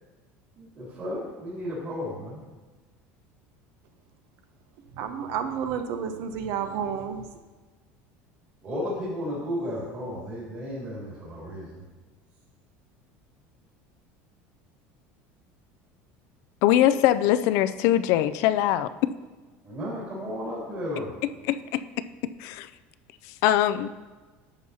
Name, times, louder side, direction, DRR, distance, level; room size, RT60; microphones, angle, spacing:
voice 1, 0.5-2.4 8.6-11.8 19.6-21.2, left 1 dB, 30° right, -8 dB, 2.8 m, -33 dB
voice 2, 5.0-7.2, right 7 dB, 60° right, 8 dB, 0.7 m, -30 dB
voice 3, 16.6-18.9 21.5-21.8 22.4-22.7 23.4-23.9, left 12 dB, 60° left, 13 dB, 0.4 m, -22 dB
11.0 x 7.1 x 2.8 m, 1.3 s
cardioid pair, 155°, 6 cm